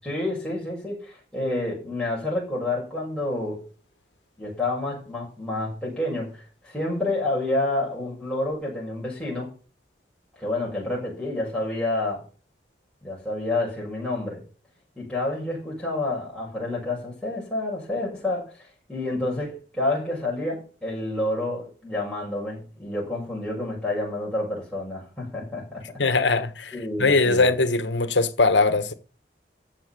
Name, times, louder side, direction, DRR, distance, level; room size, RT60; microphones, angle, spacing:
voice 1, 0.0-3.6 4.4-9.5 10.4-12.2 13.0-14.4 15.0-25.8 26.7-27.5, left 2 dB, 5° left, 6.6 m, -29 dB
voice 2, 26.0-26.7 27.0-28.9, left 3 dB, 85° left, 1.5 m, -21 dB
14.0 x 7.6 x 7.0 m
head